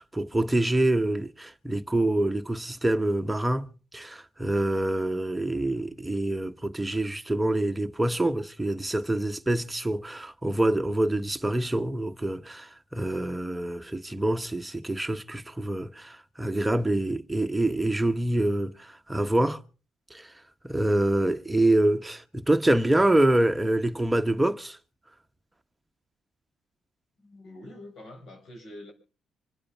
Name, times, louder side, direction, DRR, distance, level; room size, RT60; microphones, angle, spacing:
voice 1, 0.0-3.7 3.9-19.6 20.1-20.3 20.6-24.8, right 1 dB, 10° right, 1.1 m, -26 dB
voice 2, 27.2-28.9, left 1 dB, 60° left, 5.4 m, -45 dB
26.0 x 8.6 x 5.7 m
cardioid pair, 90°, 0 cm